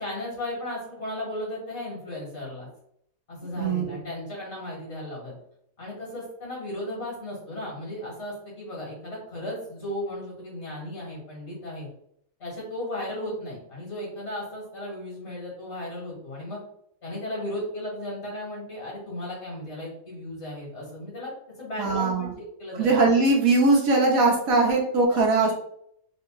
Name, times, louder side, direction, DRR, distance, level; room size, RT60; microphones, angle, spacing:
voice 1, 0.0-2.7 3.3-5.3 5.8-11.9 12.4-16.6 17.0-22.9 25.3-25.5, left 1 dB, 50° left, -3 dB, 1.8 m, -35 dB
voice 2, 3.6-4.0 21.8-22.3 22.8-25.5, right 3 dB, 80° right, 0 dB, 1.3 m, -21 dB
3.7 x 2.1 x 3.8 m, 0.69 s
omnidirectional pair, 1.5 m